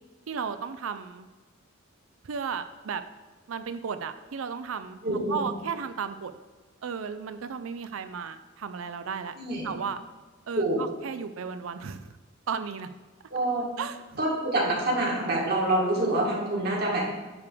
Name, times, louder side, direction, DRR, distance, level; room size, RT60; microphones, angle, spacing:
voice 1, 0.3-1.3 2.2-3.0 3.5-5.0 5.3-6.3 6.8-9.3 9.6-10.0 10.5-12.1 12.5-12.9 13.8-14.2, right 6 dB, 80° right, 11 dB, 0.5 m, -34 dB
voice 2, 5.0-5.4 9.4-9.7 10.5-10.8 13.3-13.7 14.2-17.1, right 1 dB, 50° right, -2 dB, 2.1 m, -26 dB
9.4 x 3.5 x 6.7 m, 1.2 s
head